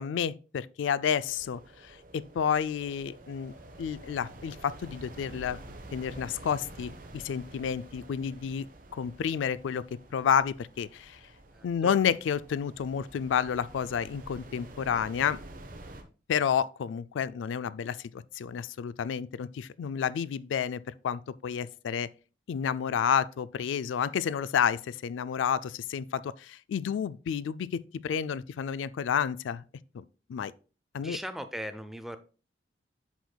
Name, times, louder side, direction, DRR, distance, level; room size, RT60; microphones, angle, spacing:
voice 1, 0.0-5.6 5.9-8.7 8.9-9.8 10.1-11.2 11.6-15.4 16.3-22.1 22.5-29.6 29.9-30.0 30.3-30.5 30.9-31.2, left 7 dB, 85° left, 0.3 m, -30 dB
sound 1, 1.3-16.0, right 1 dB, 45° right, 1.0 m, -49 dB
voice 2, 11.5-11.9 31.0-32.2, equal, ahead, 0.5 m, -39 dB
8.1 x 6.2 x 2.2 m
head